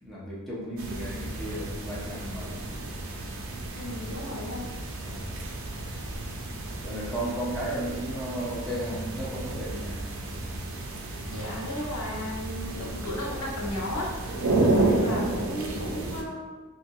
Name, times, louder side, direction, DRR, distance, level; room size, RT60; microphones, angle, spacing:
voice 1, 0.0-2.6 3.3-3.6 5.0-5.5 6.8-10.0 14.4-14.7, right 1 dB, ahead, -8 dB, 0.7 m, -35 dB
sound 1, 0.8-16.2, right 2 dB, 65° right, 0.4 m, -31 dB
voice 2, 3.7-4.7 11.2-14.1 14.8-16.6, left 1 dB, 80° left, -3 dB, 0.8 m, -35 dB
2.9 x 2.6 x 2.6 m, 1.2 s
head